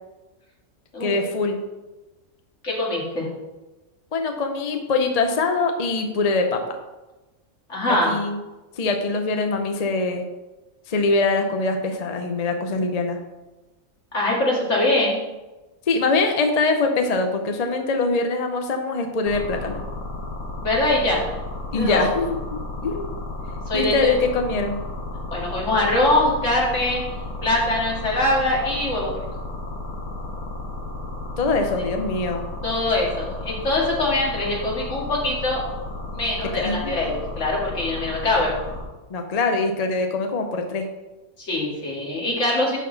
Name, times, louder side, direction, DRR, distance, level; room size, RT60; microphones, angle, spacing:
voice 1, 1.0-1.6 4.1-6.8 7.9-8.4 8.8-10.2 10.9-13.2 15.9-19.8 21.7-23.1 23.7-24.8 31.4-32.4 36.5-36.9 39.1-40.9, left 3 dB, 40° left, 5 dB, 0.6 m, -23 dB
voice 2, 2.6-3.3 7.7-8.1 14.1-15.2 20.6-21.2 21.7-22.1 23.7-24.1 25.3-27.0 27.4-29.1 32.6-35.6 36.1-38.5 41.4-42.8, left 1 dB, 55° left, -3 dB, 2.3 m, -23 dB
sound 1, 19.3-38.8, left 2 dB, 90° left, 2.0 m, -33 dB
11.5 x 4.0 x 3.9 m, 1.1 s
omnidirectional pair, 1.5 m